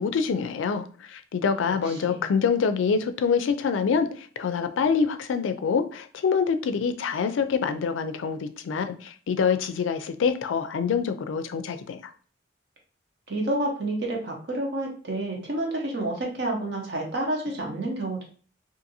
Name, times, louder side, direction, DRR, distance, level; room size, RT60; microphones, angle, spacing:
voice 1, 0.0-12.0, left 6 dB, 85° left, 0.3 m, -26 dB
voice 2, 1.7-2.2 13.3-18.2, right 1 dB, 60° right, 0.8 m, -29 dB
2.6 x 2.5 x 2.7 m
head